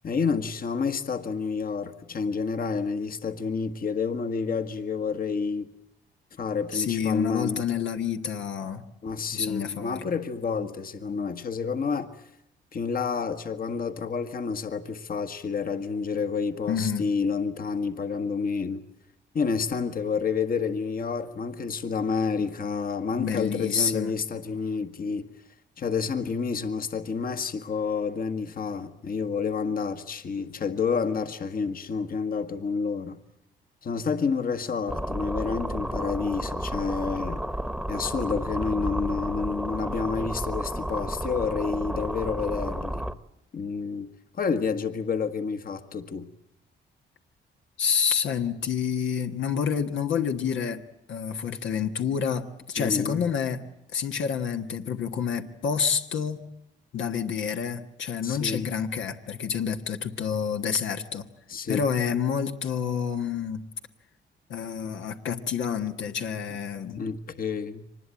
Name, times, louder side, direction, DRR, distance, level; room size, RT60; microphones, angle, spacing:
voice 1, 0.0-5.7 6.4-7.7 9.0-12.1 12.7-18.8 19.3-25.3 25.8-33.2 33.8-37.4 37.9-43.1 43.5-44.1 44.3-46.3 52.8-53.3 58.2-58.7 61.5-61.9 67.0-67.9, left 5 dB, 45° left, 1.5 m, -29 dB
voice 2, 6.7-8.8 9.3-10.0 16.7-17.1 23.2-24.2 47.8-50.8 51.1-53.7 53.9-56.4 56.9-61.2 61.7-63.7 64.5-67.0, left 7 dB, 75° left, 1.5 m, -28 dB
sound 1, 34.9-43.1, right 1 dB, ahead, 1.2 m, -32 dB
24.5 x 20.0 x 9.0 m
cardioid pair, 90°, 20 cm